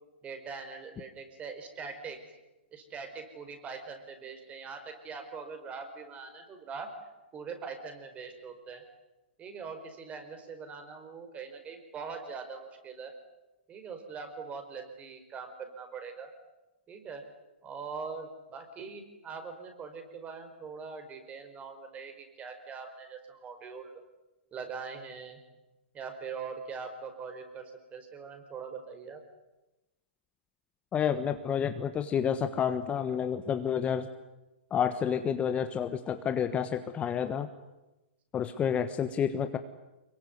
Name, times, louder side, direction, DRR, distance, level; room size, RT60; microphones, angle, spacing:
voice 1, 0.2-2.2 2.7-6.9 7.3-8.8 9.4-13.1 13.7-16.3 16.9-17.2 17.6-24.0 24.5-25.4 25.9-29.2, right 5 dB, 20° right, 7 dB, 4.9 m, -42 dB
voice 2, 30.9-34.1 34.7-37.5 38.3-39.6, left 8 dB, 20° left, 9 dB, 1.3 m, -29 dB
25.5 x 22.5 x 9.6 m, 1.0 s
hypercardioid pair, 130°, 6 cm